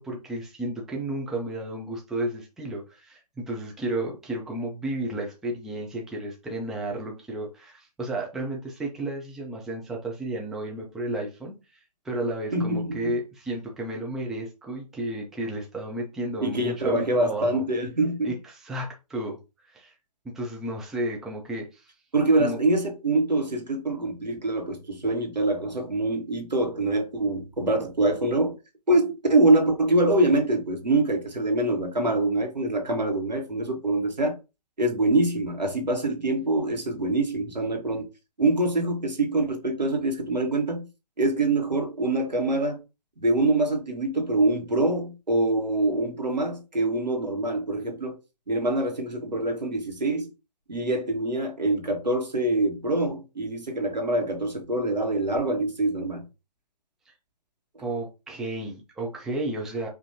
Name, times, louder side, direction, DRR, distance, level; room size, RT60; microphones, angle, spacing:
voice 1, 0.0-17.6 18.2-19.4 19.7-19.9 20.2-21.9 22.4-22.6 57.1-57.2 57.8-59.9, right 1 dB, ahead, 0.4 m, -32 dB
voice 2, 12.5-13.1 16.4-18.3 22.1-28.5 28.9-34.3 34.8-38.1 38.4-40.9 41.2-42.8 43.2-48.2 48.5-50.3 50.7-56.2, right 2 dB, 90° right, 1.5 m, -25 dB
5.0 x 2.7 x 2.7 m
figure-of-eight pair, 135°, 21 cm